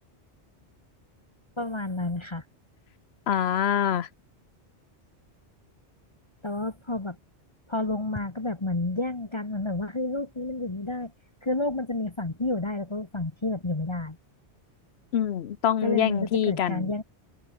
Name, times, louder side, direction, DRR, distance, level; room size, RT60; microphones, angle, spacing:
voice 1, 1.6-2.4 6.4-7.2 7.7-11.1 11.4-14.2 15.8-17.0, left 2 dB, 25° left, 1.4 m, -30 dB
voice 2, 3.3-4.1 15.1-16.9, left 9 dB, 65° left, 1.0 m, -25 dB
open air
omnidirectional pair, 1.2 m